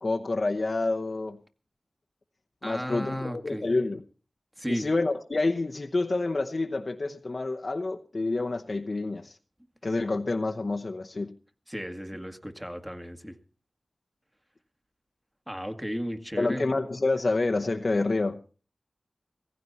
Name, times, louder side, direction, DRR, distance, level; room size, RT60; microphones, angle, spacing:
voice 1, 0.0-1.4 2.6-4.0 4.7-9.4 9.8-11.3 16.4-18.4, left 3 dB, 55° left, 4 dB, 0.9 m, -28 dB
voice 2, 2.6-3.7 4.6-4.9 11.7-13.4 15.5-16.7, equal, 10° right, 6 dB, 1.9 m, -34 dB
17.5 x 15.5 x 4.1 m, 0.37 s
cardioid pair, 50°, 0 cm